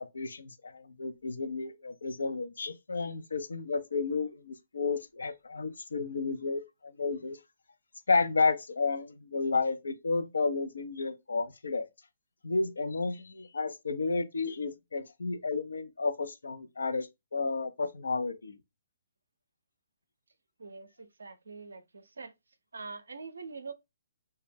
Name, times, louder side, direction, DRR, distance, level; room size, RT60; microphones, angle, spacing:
voice 1, 0.0-7.4 8.1-11.9 12.4-18.6, left 4 dB, 75° left, 0.5 m, -32 dB
voice 2, 20.6-22.3 22.7-23.7, right 4 dB, 80° right, 0.5 m, -44 dB
2.2 x 2.1 x 3.3 m
figure-of-eight pair, 130°, 0 cm